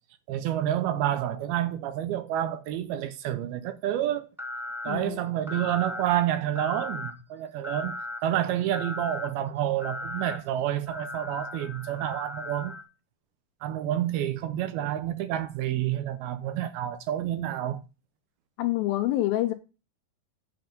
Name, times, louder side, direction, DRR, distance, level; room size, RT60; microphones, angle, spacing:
voice 1, 0.3-4.3 4.8-8.0 8.2-12.7 13.6-17.8, right 11 dB, 75° right, 2.5 m, -29 dB
sound 1, 4.4-4.9 5.5-6.0 6.5-7.1 7.6-8.2 8.7-9.3 9.8-10.4 10.9-12.8, left 2 dB, 5° right, 0.5 m, -37 dB
voice 2, 4.9-5.2 18.6-19.5, left 15 dB, 80° left, 2.3 m, -26 dB
7.9 x 5.9 x 5.2 m
omnidirectional pair, 4.7 m